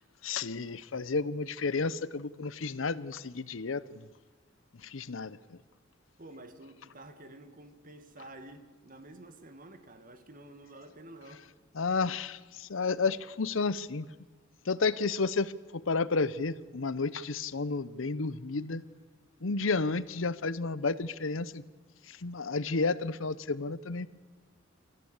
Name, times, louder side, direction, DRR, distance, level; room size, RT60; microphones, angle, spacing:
voice 1, 0.0-4.1 4.7-5.6 11.7-14.1 14.6-18.8 19.4-21.6 22.0-24.1, left 4 dB, 80° left, 0.8 m, -32 dB
voice 2, 6.2-11.5, right 1 dB, 45° right, 2.0 m, -50 dB
26.5 x 14.5 x 8.2 m
head